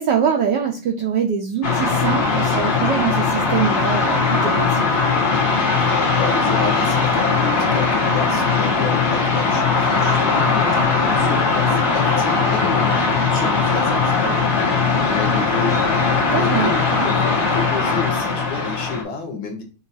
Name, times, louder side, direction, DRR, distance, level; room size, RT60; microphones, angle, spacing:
voice 1, 0.0-4.9 16.3-16.7, right 7 dB, 75° right, 3 dB, 1.0 m, -23 dB
sound 1, 1.6-19.0, left 4 dB, 50° left, 0.9 m, -19 dB
voice 2, 5.8-13.1 13.3-15.9 16.4-19.6, left 4 dB, 65° left, 1 dB, 1.7 m, -30 dB
5.6 x 2.4 x 4.0 m, 0.35 s
omnidirectional pair, 2.4 m